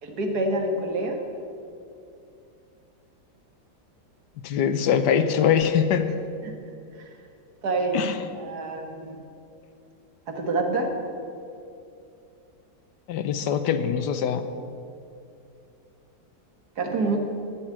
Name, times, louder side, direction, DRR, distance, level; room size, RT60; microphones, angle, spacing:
voice 1, 0.0-1.2 6.4-6.5 7.0-7.1 7.6-8.0 8.3-9.2 10.3-10.9 16.8-17.2, right 2 dB, 65° right, 4 dB, 2.1 m, -27 dB
voice 2, 4.4-6.1 7.9-8.2 13.1-14.4, left 8 dB, 80° left, 10 dB, 1.4 m, -23 dB
13.5 x 7.3 x 8.8 m, 2.5 s
omnidirectional pair, 1.8 m